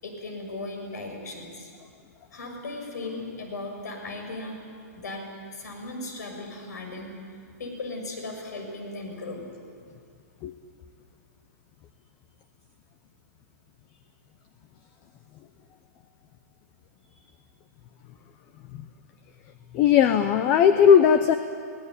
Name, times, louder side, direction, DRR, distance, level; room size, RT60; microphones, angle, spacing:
voice 1, 0.0-1.7 2.3-4.7 4.9-5.3 5.5-7.2 7.6-9.5, left 2 dB, 75° left, 3 dB, 6.7 m, -37 dB
voice 2, 19.7-21.3, left 8 dB, 20° left, 10 dB, 0.6 m, -17 dB
24.0 x 17.5 x 9.9 m, 2.3 s
hypercardioid pair, 170°, 9 cm